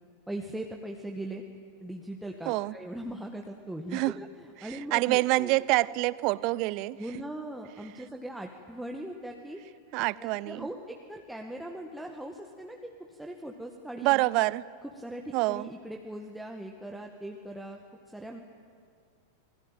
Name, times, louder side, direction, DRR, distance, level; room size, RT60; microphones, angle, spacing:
voice 1, 0.3-1.4 1.8-5.5 7.0-9.6 10.2-14.3 15.0-17.8 18.1-18.4, right 1 dB, 5° right, 2 dB, 1.9 m, -40 dB
voice 2, 4.6-7.0 9.9-10.7 14.0-14.6 15.3-15.7, right 21 dB, 45° right, 21 dB, 0.6 m, -26 dB
28.5 x 22.0 x 9.0 m, 2.2 s
figure-of-eight pair, 90°, 0 cm